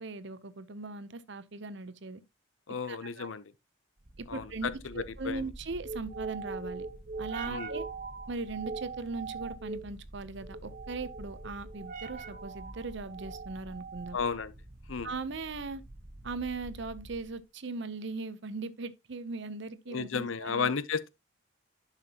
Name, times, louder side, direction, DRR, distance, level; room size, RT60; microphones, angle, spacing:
voice 1, 0.0-2.2 2.9-3.3 4.2-6.9 7.2-7.8 8.3-14.2 15.0-15.8 16.2-20.7, right 3 dB, 60° right, 0.8 m, -39 dB
voice 2, 2.7-3.5 4.3-5.5 7.5-7.7 14.1-14.5 14.9-15.1 19.9-21.1, left 5 dB, 75° left, 0.7 m, -33 dB
sound 1, 4.0-17.4, right 4 dB, 40° right, 1.4 m, -43 dB
11.0 x 5.8 x 2.9 m
head